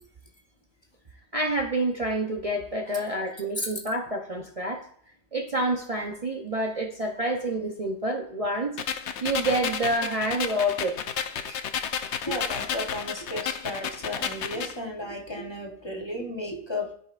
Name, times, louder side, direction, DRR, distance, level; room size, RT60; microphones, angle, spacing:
voice 1, 1.3-4.8 5.3-8.8 9.2-11.0, right 1 dB, 35° right, 1 dB, 0.8 m, -28 dB
voice 2, 2.9-3.2 3.6-3.7 11.5-11.6 12.2-16.9, left 1 dB, 25° left, 0 dB, 1.1 m, -34 dB
sound 1, 8.8-14.8, left 7 dB, 75° left, 0.9 m, -32 dB
14.0 x 5.3 x 2.5 m, 0.63 s
omnidirectional pair, 1.2 m